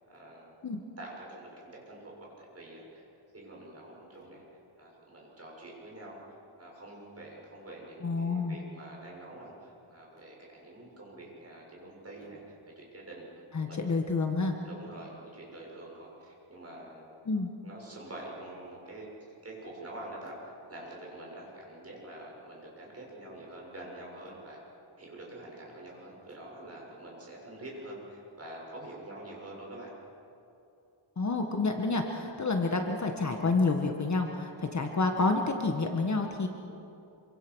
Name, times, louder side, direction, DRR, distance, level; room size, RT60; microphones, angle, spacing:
voice 1, 0.1-0.5 1.0-3.1 3.3-14.0 14.6-17.1 17.6-19.1 19.4-24.6 25.0-29.9, right 1 dB, 30° right, -3 dB, 6.9 m, -46 dB
voice 2, 8.0-8.6 13.5-14.5 17.3-17.5 31.2-36.5, left 3 dB, 35° left, 3 dB, 1.6 m, -29 dB
26.5 x 25.5 x 6.4 m, 2.8 s
wide cardioid pair, 150°, 48 cm